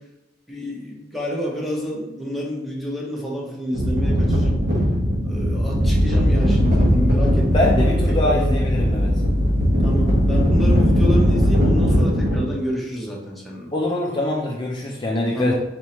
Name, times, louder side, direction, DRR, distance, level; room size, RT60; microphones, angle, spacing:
voice 1, 0.5-4.6 5.2-8.6 9.8-13.7 15.3-15.5, equal, ahead, -3 dB, 0.9 m, -29 dB
sound 1, 3.7-12.4, equal, 55° right, 1.4 m, -20 dB
sound 2, 5.8-12.0, left 1 dB, 20° right, 1.2 m, -23 dB
voice 2, 7.5-9.1 13.7-15.5, left 1 dB, 25° left, -3 dB, 0.5 m, -23 dB
4.2 x 3.5 x 3.0 m, 1.0 s
head